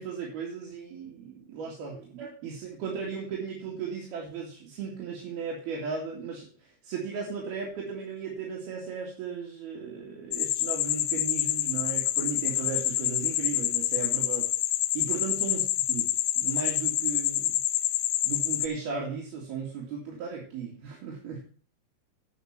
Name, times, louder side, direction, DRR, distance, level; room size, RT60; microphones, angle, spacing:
voice 1, 0.0-6.5 6.8-14.5 14.9-17.6 18.2-21.4, right 5 dB, 60° right, -4 dB, 4.0 m, -36 dB
sound 1, 10.3-18.7, left 14 dB, 90° left, 3.3 m, -27 dB
9.3 x 6.4 x 7.4 m, 0.41 s
omnidirectional pair, 5.4 m